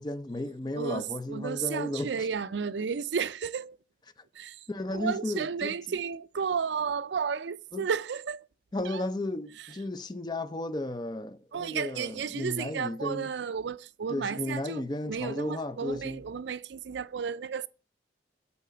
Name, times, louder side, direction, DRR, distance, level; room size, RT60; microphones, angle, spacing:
voice 1, 0.0-2.3 4.7-6.0 7.7-7.9 8.7-13.3 14.1-16.2, left 2 dB, 25° left, 0.5 m, -34 dB
voice 2, 0.8-3.8 4.4-4.6 4.9-8.4 8.8-9.0 11.5-17.7, right 6 dB, 80° right, 0.4 m, -33 dB
8.5 x 4.1 x 6.8 m
head